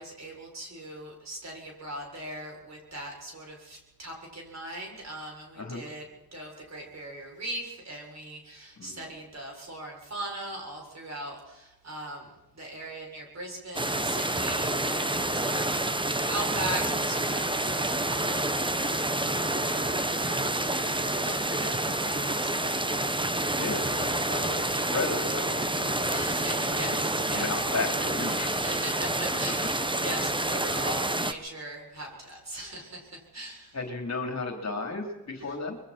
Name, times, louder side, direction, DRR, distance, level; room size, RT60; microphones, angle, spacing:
voice 1, 0.0-6.1 6.3-18.8 19.3-19.8 20.2-22.7 26.0-27.6 28.2-33.8 35.5-35.6, right 1 dB, 45° right, 0 dB, 7.6 m, -40 dB
voice 2, 8.8-9.1 23.6-26.2 27.3-28.5 33.7-35.8, left 3 dB, 45° left, 2 dB, 4.0 m, -34 dB
sound 1, 13.7-31.3, right 1 dB, 15° right, 1.2 m, -28 dB
25.5 x 23.0 x 4.6 m, 0.97 s
wide cardioid pair, 100°, 38 cm